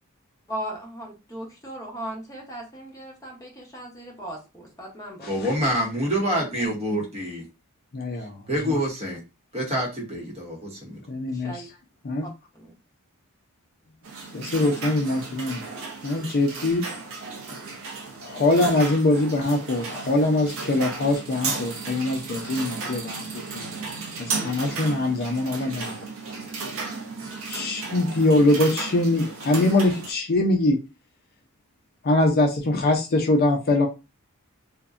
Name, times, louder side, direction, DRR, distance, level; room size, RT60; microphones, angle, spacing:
voice 1, 0.5-5.7 11.3-11.7 12.2-12.7, right 1 dB, 15° left, -1 dB, 0.8 m, -38 dB
voice 2, 5.3-7.4 8.5-9.2 9.5-11.0, equal, 30° right, -1 dB, 0.8 m, -26 dB
voice 3, 7.9-8.4 11.1-11.5 12.0-12.3 14.3-15.7 16.0-16.9 18.2-23.2 23.5-23.7 24.2-26.0 27.5-30.8 32.0-33.9, left 2 dB, 45° left, 2 dB, 0.4 m, -23 dB
sound 1, 14.0-30.1, right 4 dB, 65° right, 0.6 m, -34 dB
2.5 x 2.1 x 2.4 m, 0.27 s
head